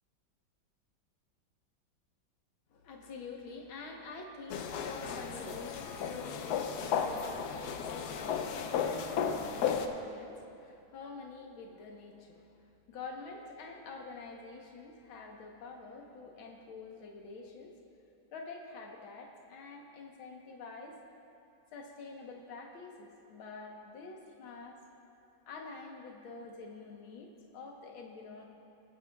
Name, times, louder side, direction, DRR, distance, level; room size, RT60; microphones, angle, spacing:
voice 1, 2.7-17.7 18.3-21.0 21.7-24.8 25.5-28.4, left 4 dB, 90° left, 1 dB, 1.9 m, -47 dB
sound 1, 4.5-9.9, left 7 dB, 70° left, 1.1 m, -34 dB
22.5 x 9.5 x 2.3 m, 2.6 s
omnidirectional pair, 2.1 m